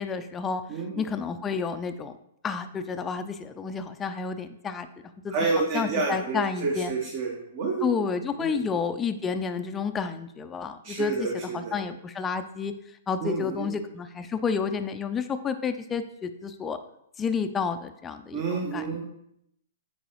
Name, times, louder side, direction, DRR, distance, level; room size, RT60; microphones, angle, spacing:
voice 1, 0.0-0.6 1.0-2.1 2.4-4.9 5.2-5.4 5.7-6.9 7.8-12.7 13.1-16.8 17.2-18.9, left 5 dB, 20° left, 8 dB, 0.5 m, -30 dB
voice 2, 5.3-7.9 8.4-8.7 10.8-11.7 13.2-13.7 18.3-19.1, right 4 dB, 45° right, -2 dB, 1.3 m, -29 dB
8.3 x 4.6 x 3.0 m, 0.76 s
hypercardioid pair, 120°, 0 cm